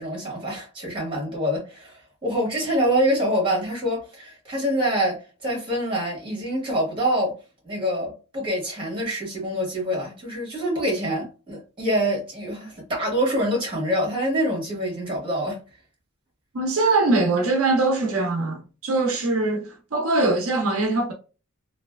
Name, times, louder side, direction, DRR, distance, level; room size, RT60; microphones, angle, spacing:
voice 1, 0.0-7.3 7.6-15.6, equal, 25° right, 1.6 m, -25 dB
voice 2, 16.5-21.1, right 2 dB, 75° right, 0.7 m, -22 dB
3.2 x 2.7 x 2.3 m
head